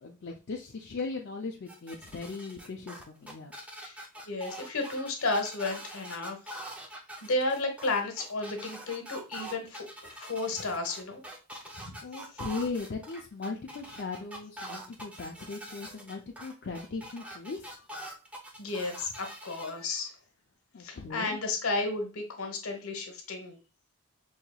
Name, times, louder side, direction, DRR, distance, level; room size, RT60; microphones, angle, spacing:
voice 1, 0.0-3.5 12.0-17.7 20.7-21.4, left 4 dB, 50° left, 0 dB, 0.4 m, -38 dB
sound 1, 1.7-19.7, right 1 dB, 5° right, 0.5 m, -44 dB
voice 2, 4.3-6.7 7.2-11.2 11.5-11.6 11.8-12.4 18.6-20.1 20.8-23.6, left 2 dB, 70° left, 4 dB, 1.0 m, -33 dB
5.6 x 2.8 x 2.3 m, 0.33 s
head